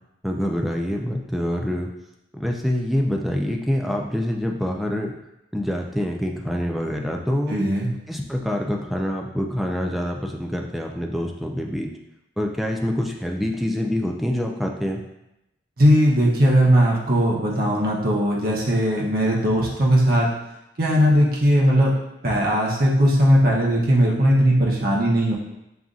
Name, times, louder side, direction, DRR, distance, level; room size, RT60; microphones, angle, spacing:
voice 1, 0.2-1.9 2.3-5.1 5.5-7.6 8.1-11.9 12.4-15.0, equal, ahead, 0 dB, 0.3 m, -26 dB
voice 2, 7.5-7.9 15.8-20.3 20.8-21.9 22.2-25.4, equal, 55° right, -3 dB, 0.8 m, -18 dB
7.0 x 2.5 x 2.4 m, 0.89 s
head